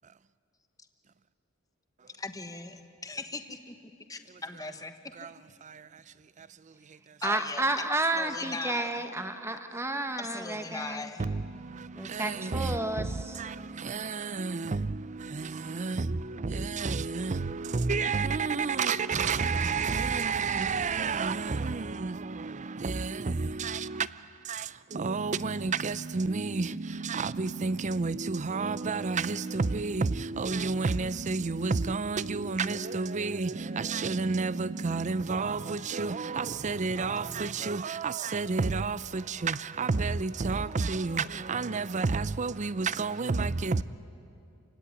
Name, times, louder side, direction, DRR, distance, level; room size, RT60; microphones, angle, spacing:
voice 1, 2.2-3.7 4.1-4.9 7.2-7.8 8.1-8.9 10.2-11.3, left 3 dB, 15° left, 1.3 m, -39 dB
voice 2, 5.6-7.2 11.2-43.8, right 4 dB, 35° right, 0.5 m, -31 dB
voice 3, 7.2-11.1 11.9-13.4, right 2 dB, 10° right, 1.3 m, -31 dB
29.5 x 16.5 x 9.9 m
head